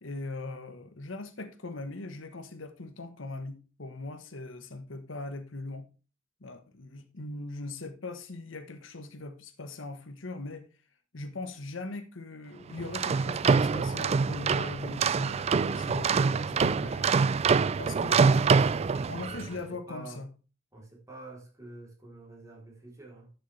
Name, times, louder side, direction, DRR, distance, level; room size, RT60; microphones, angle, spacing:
voice 1, 0.0-5.9 6.4-10.7 11.1-17.1 17.8-18.5 19.1-20.3, left 2 dB, 70° left, 1.2 m, -40 dB
sound 1, 12.8-19.5, right 5 dB, 35° right, 0.3 m, -25 dB
voice 2, 18.6-20.2 20.7-23.3, right 2 dB, 15° right, 3.4 m, -47 dB
11.5 x 6.6 x 3.3 m
head